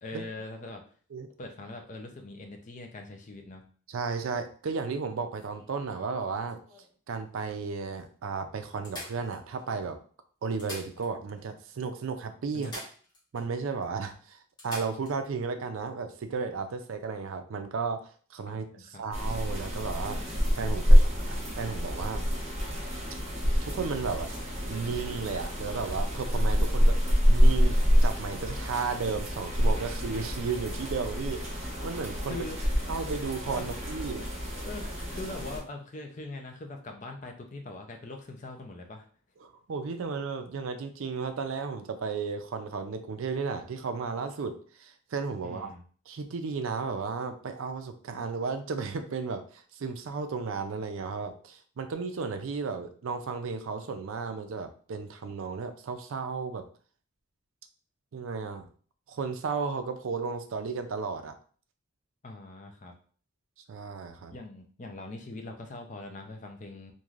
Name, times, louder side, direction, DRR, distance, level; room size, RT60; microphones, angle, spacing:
voice 1, 0.0-0.8 1.4-3.7 12.5-12.7 18.5-19.0 20.9-21.4 32.3-32.7 33.5-33.7 34.6-39.1 45.4-45.8 62.2-62.9 64.3-66.9, left 2 dB, 35° left, 3 dB, 0.5 m, -42 dB
voice 2, 3.9-6.6 7.1-10.0 10.4-12.7 13.3-20.2 20.5-21.0 21.6-22.2 23.6-24.3 24.7-32.5 32.9-34.3 39.4-45.7 46.1-56.6 58.1-58.7 59.1-61.3 63.7-64.3, right 5 dB, 70° right, 8 dB, 0.4 m, -34 dB
sound 1, 5.3-7.0 7.6-7.7 8.0-8.1 8.8-9.8 10.4-11.4 11.7-11.8 12.6-13.5 13.8-13.9 14.6-15.2 17.1-17.3, left 1 dB, 20° left, 0.9 m, -45 dB
sound 2, 19.1-35.6, equal, 30° right, 0.8 m, -26 dB
3.1 x 2.6 x 2.4 m, 0.43 s
head